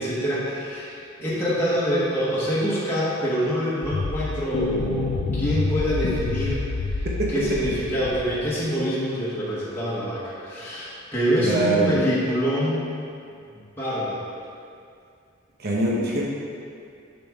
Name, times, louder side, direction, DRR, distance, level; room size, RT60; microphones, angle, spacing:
voice 1, 0.0-6.6 6.9-12.8 13.8-14.3, equal, 10° left, -10 dB, 1.3 m, -26 dB
sound 1, 3.8-8.5, left 3 dB, 75° left, 0.4 m, -28 dB
voice 2, 11.4-11.9 15.6-16.2, right 2 dB, 50° right, -4 dB, 1.0 m, -23 dB
6.8 x 6.1 x 3.6 m, 2.4 s
head